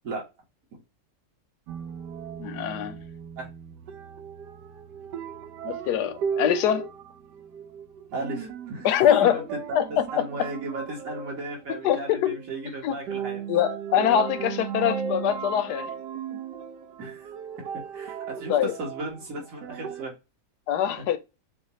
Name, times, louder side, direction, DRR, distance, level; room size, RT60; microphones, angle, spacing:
sound 1, 1.7-20.0, right 7 dB, 85° right, 1.2 m, -36 dB
voice 1, 2.4-3.0 5.6-6.9 8.8-9.4 9.7-10.0 11.7-12.4 12.7-12.9 13.5-15.9 18.5-18.7 20.7-21.2, left 10 dB, 80° left, 1.2 m, -24 dB
voice 2, 8.1-9.4 9.7-13.4 17.0-17.3 17.9-20.1, right 2 dB, 55° right, 2.0 m, -35 dB
6.3 x 2.4 x 3.1 m
omnidirectional pair, 1.8 m